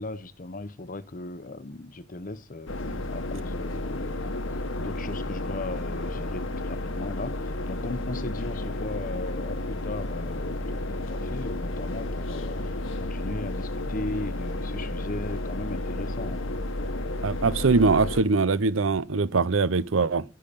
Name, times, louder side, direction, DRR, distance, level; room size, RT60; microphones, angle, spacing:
voice 1, 0.0-2.7 3.1-12.6 13.0-16.4, left 2 dB, 45° left, 0.9 m, -37 dB
sound 1, 2.7-18.2, left 1 dB, 80° left, 1.4 m, -32 dB
voice 2, 17.2-20.2, right 4 dB, 80° right, 0.7 m, -22 dB
15.5 x 5.7 x 8.6 m
head